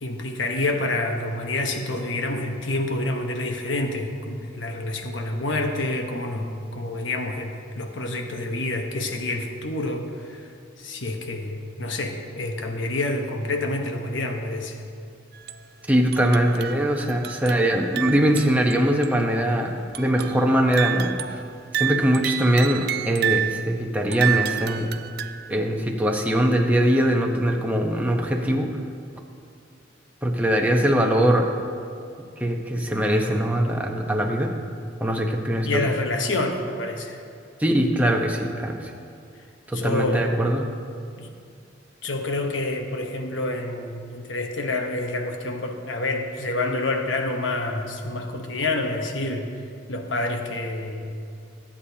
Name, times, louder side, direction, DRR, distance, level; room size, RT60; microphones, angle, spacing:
voice 1, 0.0-10.4 10.8-14.8 35.6-37.2 39.7-40.3 41.2-41.3 42.0-49.5 49.9-51.2, left 2 dB, 85° left, 4 dB, 1.0 m, -28 dB
sound 1, 15.3-15.7 16.1-18.7 19.0-19.1 19.9-20.4 20.7-23.6 24.1-25.6, right 12 dB, 55° right, 0.4 m, -29 dB
voice 2, 15.9-21.4 21.7-24.9 25.5-28.7 30.2-31.5 32.4-34.5 35.0-35.9 37.6-38.9 39.7-40.6, equal, 10° right, 1 dB, 0.9 m, -22 dB
21.5 x 8.5 x 2.8 m, 2.4 s
head